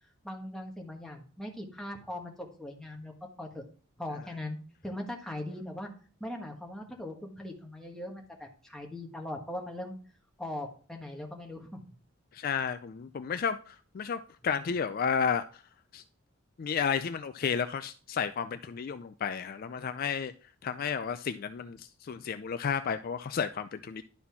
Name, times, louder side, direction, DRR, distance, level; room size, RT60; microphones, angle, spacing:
voice 1, 0.2-3.1 3.4-3.6 4.0-5.9 6.2-10.0 10.4-11.8, left 1 dB, 5° left, 1.4 m, -40 dB
voice 2, 12.3-15.6 15.9-16.0 16.6-20.3 20.6-24.0, left 6 dB, 45° left, 0.3 m, -32 dB
11.0 x 4.2 x 5.7 m
head